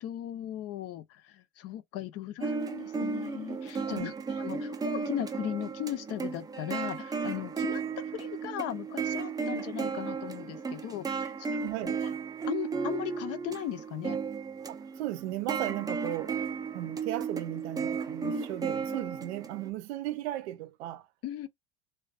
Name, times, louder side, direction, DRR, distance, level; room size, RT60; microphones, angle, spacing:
voice 1, 0.0-12.0 12.5-14.2 21.2-21.5, left 12 dB, 50° left, 0.5 m, -38 dB
sound 1, 2.4-19.7, right 5 dB, 15° right, 0.3 m, -34 dB
voice 2, 11.6-12.0 14.7-16.4 16.7-21.1, right 15 dB, 90° right, 0.6 m, -36 dB
2.4 x 2.2 x 2.3 m
supercardioid pair, 100°, 32 cm